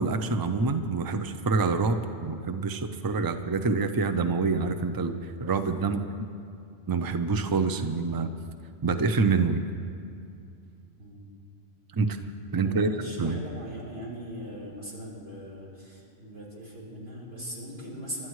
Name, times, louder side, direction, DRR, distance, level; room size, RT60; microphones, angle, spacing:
voice 1, 0.0-6.0 6.9-8.3 8.8-9.6 11.9-12.2 12.5-13.4, right 4 dB, 25° right, 8 dB, 0.5 m, -26 dB
voice 2, 11.0-11.3 12.6-18.3, equal, 65° right, -6 dB, 4.3 m, -40 dB
29.5 x 12.5 x 3.2 m, 2.4 s
omnidirectional pair, 1.1 m